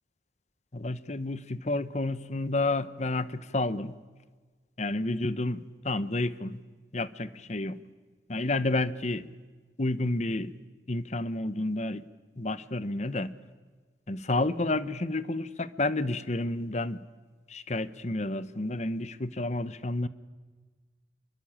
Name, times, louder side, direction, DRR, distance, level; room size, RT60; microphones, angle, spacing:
voice 1, 0.7-3.9 4.8-6.6 6.9-7.8 8.3-9.3 9.8-10.5 10.9-12.0 12.4-13.3 14.1-17.0 17.5-20.1, left 2 dB, 35° left, 15 dB, 1.0 m, -30 dB
26.0 x 23.5 x 8.8 m, 1.4 s
head